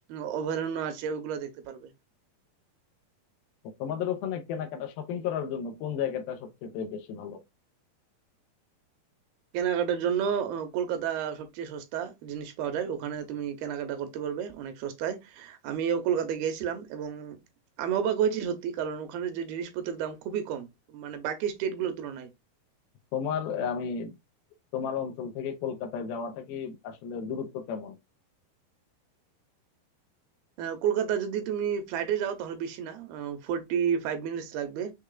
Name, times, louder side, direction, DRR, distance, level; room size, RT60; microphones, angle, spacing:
voice 1, 0.1-1.9 9.5-17.4 17.8-22.3 30.6-34.9, right 8 dB, 80° right, 2.5 m, -31 dB
voice 2, 3.8-7.4 23.1-24.2 24.7-28.0, left 7 dB, 80° left, 2.5 m, -33 dB
6.5 x 3.3 x 2.3 m
omnidirectional pair, 4.4 m